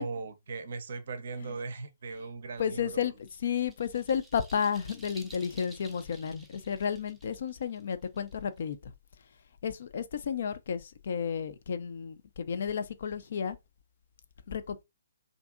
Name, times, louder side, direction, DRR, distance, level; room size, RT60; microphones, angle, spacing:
voice 1, 0.0-3.1, right 4 dB, 55° right, 0.5 m, -38 dB
voice 2, 2.6-8.9 9.6-13.6 14.5-14.8, left 7 dB, 55° left, 0.4 m, -32 dB
sound 1, 2.9-8.7, right 2 dB, 5° right, 0.5 m, -53 dB
2.6 x 2.6 x 2.4 m
figure-of-eight pair, 130°, 0 cm